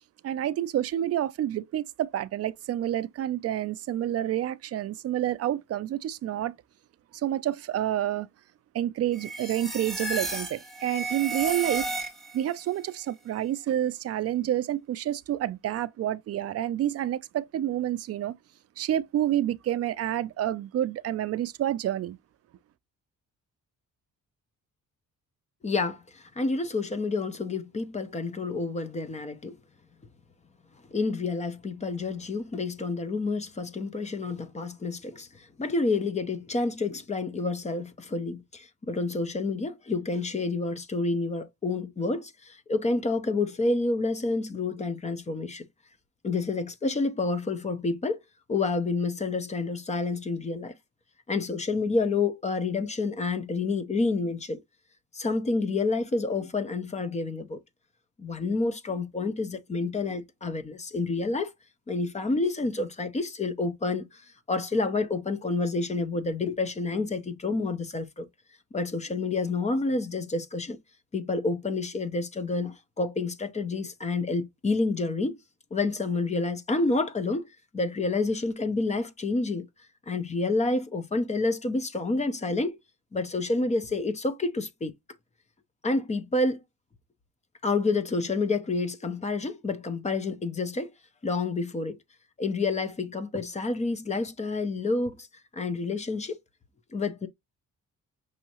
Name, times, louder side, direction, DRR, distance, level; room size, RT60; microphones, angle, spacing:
voice 1, 0.2-6.5 7.1-8.3 8.7-11.9 12.3-18.3 18.8-22.2, right 12 dB, 50° right, 0.4 m, -29 dB
sound 1, 9.1-12.5, right 2 dB, ahead, 1.3 m, -33 dB
voice 2, 25.6-29.6 30.9-45.7 46.2-48.2 48.5-50.7 51.3-54.6 55.1-57.6 58.2-61.5 61.9-64.2 64.5-68.3 68.7-70.8 71.1-75.4 75.7-77.5 77.7-79.7 80.1-82.8 83.1-84.9 85.8-86.6 87.6-90.9 91.2-92.0 92.4-95.2 95.5-96.4 96.9-97.3, left 3 dB, 20° left, 0.7 m, -29 dB
6.2 x 2.8 x 2.9 m
cardioid pair, 155°, 31 cm